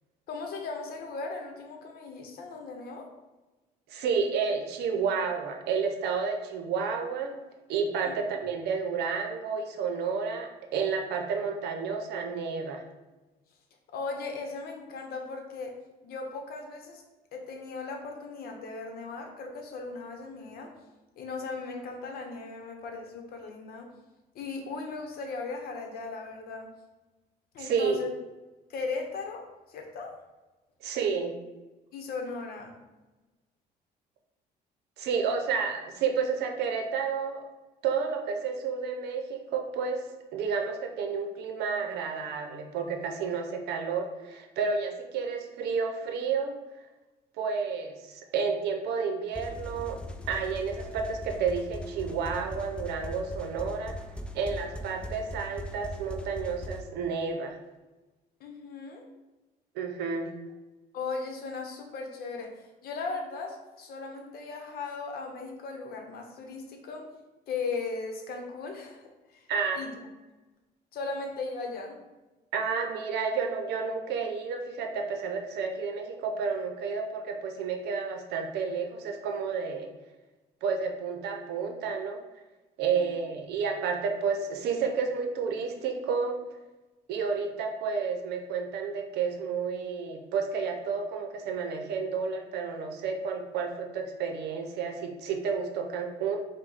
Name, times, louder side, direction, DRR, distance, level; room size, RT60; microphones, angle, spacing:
voice 1, 0.3-3.1 8.0-8.1 13.9-15.8 16.0-17.0 17.3-20.7 21.2-23.9 24.3-26.7 27.5-28.1 28.7-30.2 31.9-32.8 58.4-59.0 60.9-67.1 67.5-69.0 69.3-69.5 69.7-70.0 70.9-72.0 82.9-83.2, left 4 dB, 65° left, 2 dB, 0.8 m, -37 dB
voice 2, 3.9-7.3 7.7-12.8 27.6-28.0 30.8-31.3 35.0-37.4 37.8-40.0 40.3-46.5 47.4-50.0 50.3-53.9 54.3-57.6 59.7-60.3 69.5-69.8 72.5-79.9 80.6-82.2 82.8-86.4 87.1-96.4, right 5 dB, 75° right, 3 dB, 0.7 m, -31 dB
sound 1, 49.3-56.8, left 1 dB, 5° left, 0.4 m, -40 dB
5.0 x 2.2 x 3.9 m, 1.1 s
cardioid pair, 110°, 17 cm